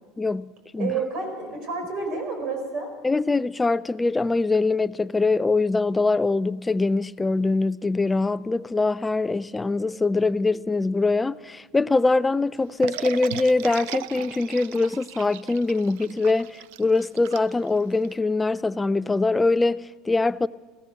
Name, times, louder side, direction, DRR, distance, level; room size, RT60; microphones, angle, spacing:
voice 1, 0.2-1.0 3.0-20.5, left 3 dB, 10° left, 0.3 m, -23 dB
voice 2, 0.8-2.9, right 4 dB, 55° right, 4.8 m, -29 dB
sound 1, 12.8-18.1, right 14 dB, 80° right, 0.4 m, -37 dB
15.5 x 14.5 x 6.0 m
supercardioid pair, 120°, 0 cm